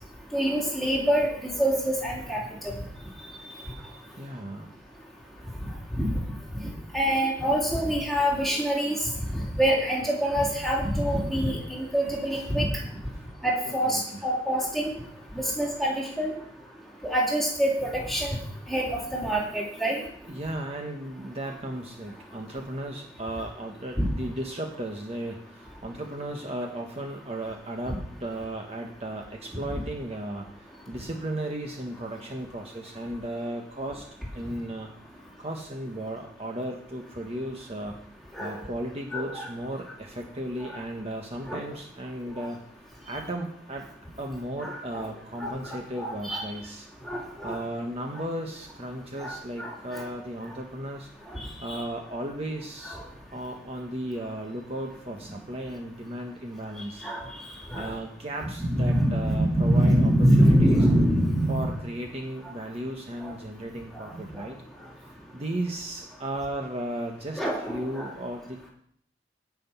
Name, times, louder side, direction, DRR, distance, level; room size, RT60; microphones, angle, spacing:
voice 1, 0.3-2.4 2.6-2.7 5.9-6.2 6.9-9.0 9.3-12.7 13.4-14.9 15.3-16.3 17.0-18.4 18.7-18.9 19.1-20.0 24.0-24.1 27.9-28.0 38.4-38.5 39.1-39.3 41.5-41.6 44.6-45.1 45.4-45.5 46.0-46.4 47.1-47.6 49.2-49.3 49.6-50.0 51.7-51.8 52.9-53.0 57.0-57.2 57.7-57.9 58.6-61.7 63.2-63.3 64.1-64.2 67.4-68.1, equal, ahead, -3 dB, 2.9 m, -25 dB
voice 2, 4.2-4.7 13.1-13.2 13.9-14.2 20.3-34.0 34.3-34.9 35.4-38.0 38.4-42.6 43.0-43.9 44.2-46.9 47.4-51.1 51.6-53.0 53.3-57.0 57.7-60.8 61.5-64.6 65.3-68.7, right 1 dB, 35° right, 2 dB, 1.2 m, -35 dB
16.5 x 5.9 x 5.7 m, 0.64 s
head